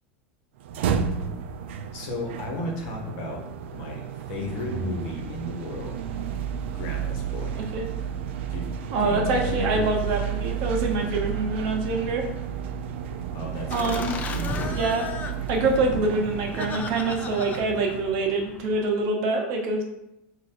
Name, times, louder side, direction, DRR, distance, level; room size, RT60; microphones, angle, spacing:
sound 1, 0.6-18.7, right 8 dB, 85° right, 0.3 m, -32 dB
voice 1, 1.9-3.4 3.7-6.1 6.7-7.6 8.5-8.6 9.0-9.9 13.3-14.7, left 1 dB, 60° left, 0 dB, 1.1 m, -34 dB
voice 2, 8.9-12.2 13.7-14.1 14.8-15.1 15.5-19.8, right 3 dB, 55° right, 2 dB, 0.8 m, -25 dB
Laughter, 13.7-18.9, left 5 dB, 25° left, 0.4 m, -36 dB
3.7 x 2.5 x 4.2 m, 0.86 s
supercardioid pair, 135°, 6 cm